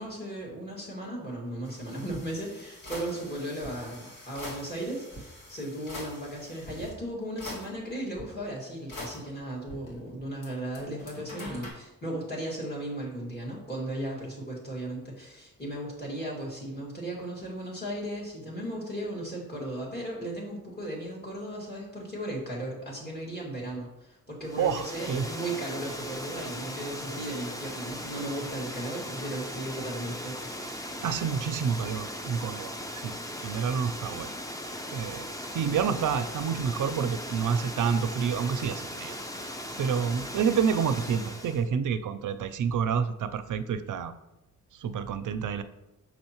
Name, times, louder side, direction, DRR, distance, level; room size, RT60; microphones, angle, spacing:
voice 1, 0.0-30.9, right 1 dB, 30° left, -5 dB, 2.2 m, -36 dB
sound 1, 1.6-6.9 7.4-8.2 8.9-10.5 10.7-11.7, left 1 dB, 80° left, 2.0 m, -43 dB
Water, 24.4-41.6, equal, 10° left, 0.5 m, -38 dB
voice 2, 24.6-25.3 31.0-33.2 33.4-34.3 34.9-39.2 39.4-44.1 44.7-45.6, right 7 dB, 70° right, 12 dB, 0.5 m, -29 dB
6.3 x 6.0 x 3.0 m, 0.97 s
wide cardioid pair, 125°, 32 cm